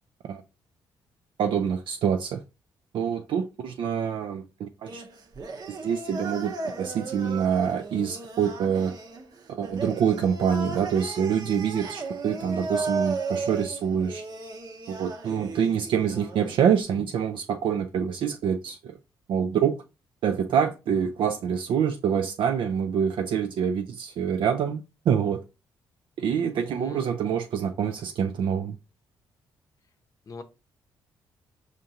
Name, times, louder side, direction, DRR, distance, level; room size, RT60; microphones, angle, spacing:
voice 1, 1.4-2.4 2.9-5.0 5.7-8.9 9.5-14.2 14.9-19.0 19.3-19.8 20.2-25.4 26.2-28.7, right 8 dB, 65° right, 0.4 m, -26 dB
sound 1, 4.8-16.8, right 3 dB, 50° right, 0.8 m, -35 dB
voice 2, 12.5-12.9 26.7-27.0 30.3-30.4, left 4 dB, 40° left, 0.6 m, -41 dB
5.1 x 2.5 x 2.8 m
cardioid pair, 75°, 9 cm